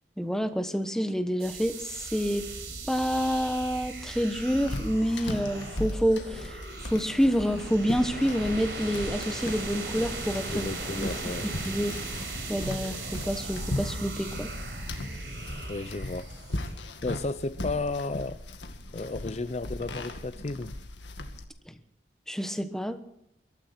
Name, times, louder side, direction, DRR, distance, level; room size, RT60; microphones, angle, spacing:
voice 1, 0.2-2.5 2.9-10.7 11.0-11.9 12.5-14.5 21.7-21.8 22.3-23.0, equal, 5° left, 9 dB, 1.2 m, -28 dB
sound 1, 1.4-16.7, right 2 dB, 65° right, 5.7 m, -38 dB
sound 2, 4.5-21.4, left 1 dB, 90° left, 2.0 m, -38 dB
voice 2, 10.5-11.5 15.7-16.3 17.0-18.4 18.9-20.7, left 3 dB, 35° left, 13 dB, 0.5 m, -33 dB
22.5 x 13.0 x 4.4 m, 0.76 s
head